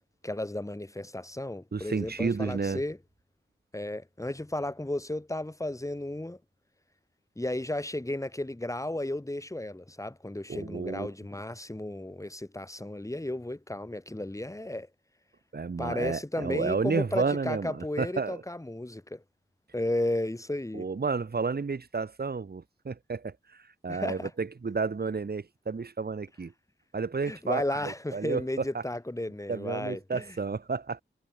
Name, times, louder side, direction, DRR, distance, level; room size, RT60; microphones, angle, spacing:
voice 1, 0.2-3.0 3.7-6.4 7.4-14.9 15.8-19.2 19.7-20.9 23.9-24.3 27.3-30.4, left 1 dB, 15° left, 7.4 m, -34 dB
voice 2, 1.7-2.8 10.5-11.1 15.5-18.4 20.7-26.5 26.9-28.8 29.5-31.0, right 4 dB, 50° right, 2.0 m, -31 dB
wide cardioid pair, 115°, 20 cm